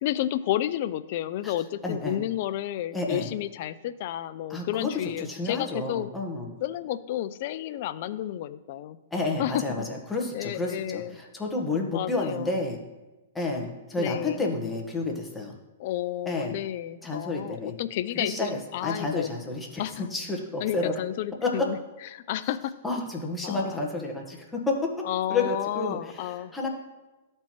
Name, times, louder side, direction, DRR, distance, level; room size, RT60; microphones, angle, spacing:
voice 1, 0.0-6.1 6.6-9.0 9.4-9.9 10.3-11.2 11.9-12.5 14.0-14.5 15.8-19.3 19.8-20.1 20.6-21.8 22.1-22.7 23.4-23.9 25.0-26.5, left 12 dB, 55° left, 14 dB, 0.4 m, -31 dB
voice 2, 1.8-2.2 2.9-3.3 4.5-4.9 5.2-6.5 9.1-12.8 13.3-15.5 16.3-16.5 17.0-17.7 18.1-18.5 18.8-19.8 20.1-20.9 21.4-21.7 22.8-26.7, left 3 dB, 10° left, -1 dB, 1.2 m, -30 dB
13.0 x 4.4 x 3.0 m, 1.1 s
hypercardioid pair, 125°, 0 cm